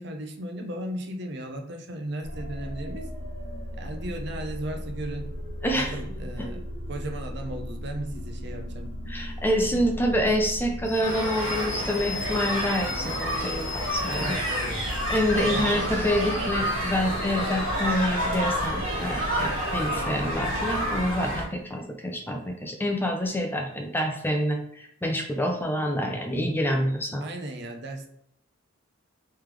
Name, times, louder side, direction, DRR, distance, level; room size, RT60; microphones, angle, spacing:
voice 1, 0.0-3.1 3.8-5.4 5.7-6.6 6.9-8.9 9.6-9.8 14.1-14.9 15.4-16.2 27.2-28.1, right 1 dB, 55° right, 3 dB, 0.6 m, -36 dB
sound 1, 2.2-21.6, left 1 dB, 55° left, 1.0 m, -37 dB
voice 2, 5.6-6.0 6.4-6.5 9.1-14.4 15.1-27.3, equal, 10° left, 2 dB, 0.5 m, -27 dB
sound 2, 11.0-21.4, equal, 85° right, 1.3 m, -29 dB
3.4 x 3.2 x 3.3 m, 0.72 s
head